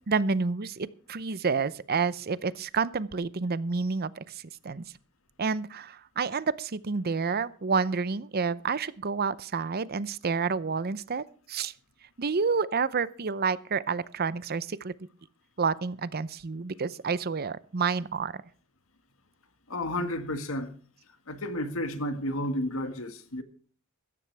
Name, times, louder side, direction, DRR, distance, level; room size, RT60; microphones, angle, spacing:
voice 1, 0.1-4.2 4.6-4.8 5.4-11.7 12.2-14.9 15.6-18.3, right 5 dB, 50° right, 0.6 m, -29 dB
voice 2, 19.7-20.7 21.3-23.4, left 1 dB, 75° left, 1.8 m, -32 dB
16.0 x 14.0 x 3.4 m
head